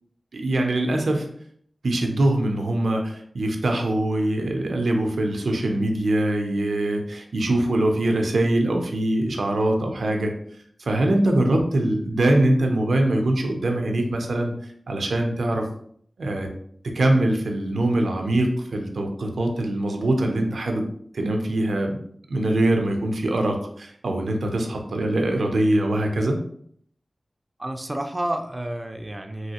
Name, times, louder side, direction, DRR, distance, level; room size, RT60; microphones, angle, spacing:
voice 1, 0.3-1.3 1.8-10.3 10.8-14.5 14.9-15.7 16.2-16.5 16.9-20.8 21.1-22.0 22.3-26.4, right 1 dB, 85° right, 3 dB, 0.5 m, -23 dB
voice 2, 27.6-29.5, right 1 dB, 30° right, 5 dB, 0.4 m, -30 dB
3.1 x 2.8 x 2.8 m, 0.63 s
cardioid pair, 40°, 0 cm